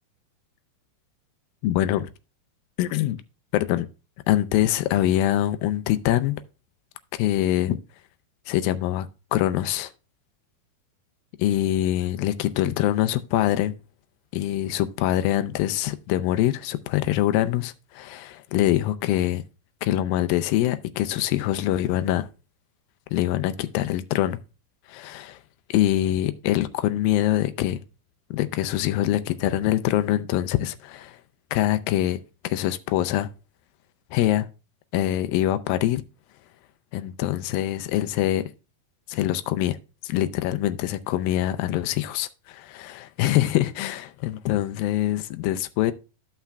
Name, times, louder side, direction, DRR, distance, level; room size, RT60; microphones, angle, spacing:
voice 1, 1.6-2.1 2.8-3.2 3.5-3.9 4.3-6.4 7.1-7.8 8.5-9.9 11.4-13.8 14.3-19.4 19.8-22.3 23.1-24.4 24.9-25.4 25.7-27.8 28.3-31.2 31.5-32.2 32.4-33.3 34.1-34.5 34.9-36.0 36.9-38.5 39.1-39.8 40.0-45.9, left 13 dB, 80° left, 2.2 m, -24 dB
14.0 x 5.8 x 2.2 m
omnidirectional pair, 4.4 m